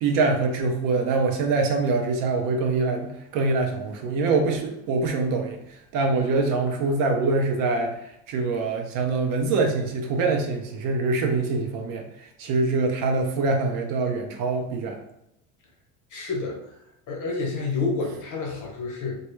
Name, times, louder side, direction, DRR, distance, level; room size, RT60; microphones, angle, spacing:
voice 1, 0.0-5.6 5.9-7.9 8.3-12.0 12.4-15.0, right 3 dB, 60° right, 3 dB, 0.5 m, -24 dB
voice 2, 16.1-16.7 17.1-19.1, left 3 dB, 50° left, -1 dB, 0.9 m, -29 dB
2.2 x 2.0 x 3.0 m, 0.79 s
supercardioid pair, 105°, 39 cm